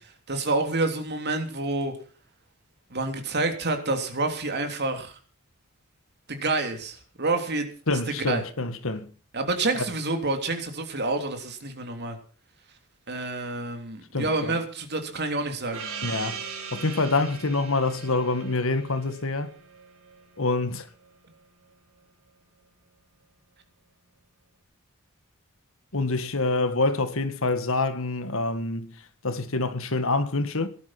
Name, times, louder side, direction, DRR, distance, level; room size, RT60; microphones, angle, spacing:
voice 1, 0.3-1.9 2.9-5.2 6.3-8.4 9.3-12.2 13.1-15.8, right 2 dB, 50° right, 3.3 m, -28 dB
voice 2, 7.9-9.1 14.1-14.5 16.0-16.4 16.7-19.5 20.4-20.9 25.9-29.0 29.2-30.7, left 3 dB, 65° left, 1.7 m, -26 dB
Gong, 15.7-20.8, right 6 dB, 70° right, 5.7 m, -39 dB
18.0 x 11.5 x 5.9 m
head